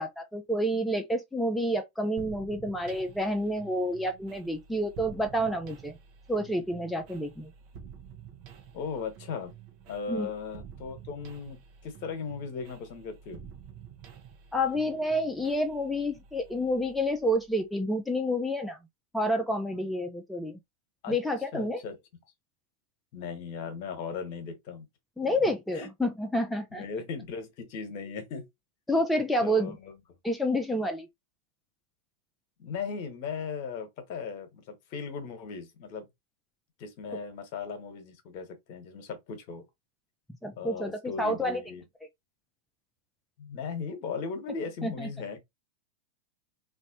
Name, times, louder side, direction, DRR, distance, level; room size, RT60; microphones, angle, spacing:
voice 1, 0.0-6.0 6.3-7.5 10.1-10.3 14.5-18.8 19.1-20.6 21.1-21.8 25.2-26.8 28.9-29.7 30.2-31.1 40.4-41.6 44.8-45.1, equal, 5° left, 0.5 m, -29 dB
sound 1, 2.2-17.8, right 7 dB, 45° right, 1.0 m, -50 dB
voice 2, 8.7-9.5 9.9-13.5 21.0-21.2 21.5-22.0 23.1-24.9 25.7-25.9 26.7-28.5 29.4-30.0 32.6-36.1 36.8-39.6 40.6-41.8 43.4-45.4, left 5 dB, 55° left, 1.1 m, -37 dB
3.2 x 2.6 x 2.7 m
hypercardioid pair, 100°, 0 cm